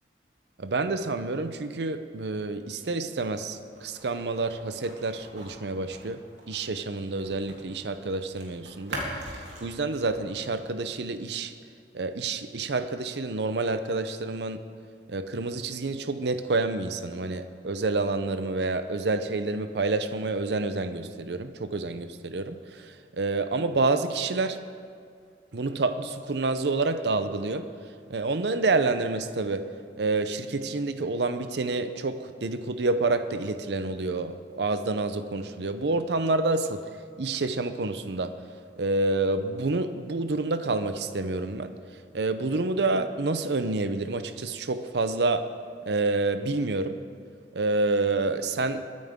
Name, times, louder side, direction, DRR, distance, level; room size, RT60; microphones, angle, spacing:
voice 1, 0.6-6.2 6.5-9.0 9.6-11.5 11.9-14.6 15.1-24.6 25.5-27.7 28.1-29.7 30.0-36.8 37.2-38.3 38.8-41.7 42.1-45.4 45.9-47.0 47.5-48.8, right 3 dB, 65° right, 10 dB, 0.6 m, -28 dB
sound 1, 3.1-7.7 7.9-10.6, right 1 dB, 80° right, 3.0 m, -42 dB
22.0 x 9.5 x 3.6 m, 2.2 s
head